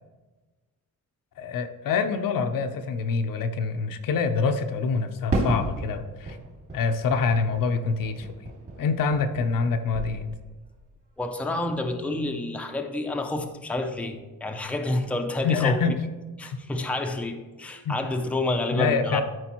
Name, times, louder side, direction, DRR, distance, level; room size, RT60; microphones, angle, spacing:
voice 1, 1.4-6.4 6.7-8.3 8.8-10.3 15.4-16.0 16.4-16.5 17.8-18.0 18.7-19.2, left 5 dB, 70° left, 7 dB, 0.7 m, -25 dB
Fireworks, 5.3-9.7 9.9-10.7, right 2 dB, 40° right, 2.2 m, -33 dB
voice 2, 11.2-15.8 16.4-19.2, left 2 dB, 5° left, 4 dB, 0.5 m, -29 dB
12.5 x 4.7 x 3.0 m, 1.2 s
cardioid pair, 135°, 35 cm